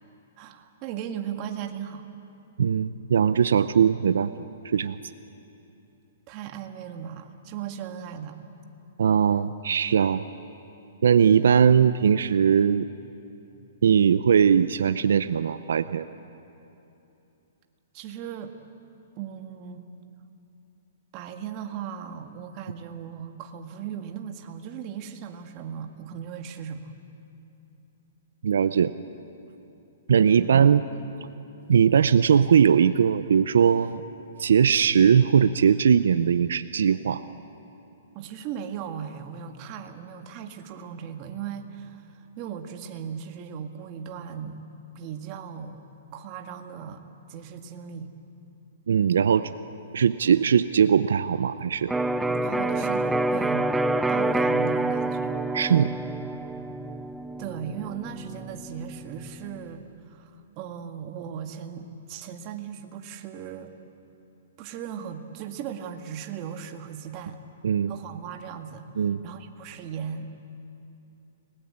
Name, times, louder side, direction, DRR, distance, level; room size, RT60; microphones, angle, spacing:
voice 1, 0.4-2.0 6.3-8.4 17.9-18.5 19.2-19.9 21.1-26.9 30.4-30.8 38.1-44.6 45.0-45.8 46.1-47.0 47.3-48.1 52.2-53.7 54.1-55.4 57.4-63.7 64.6-67.4 67.9-70.3, right 8 dB, 30° right, 5 dB, 1.9 m, -37 dB
voice 2, 2.6-4.3 4.7-5.0 9.0-10.2 11.0-12.9 13.8-16.1 28.4-28.9 30.1-30.8 31.7-34.0 34.4-37.2 48.9-49.5 49.9-51.9 55.5-55.9 67.6-67.9 69.0-69.2, right 7 dB, 80° right, 13 dB, 0.7 m, -20 dB
Electric guitar, 51.9-59.7, right 2 dB, 5° right, 0.5 m, -27 dB
30.0 x 20.0 x 8.8 m, 2.9 s
hypercardioid pair, 155°, 0 cm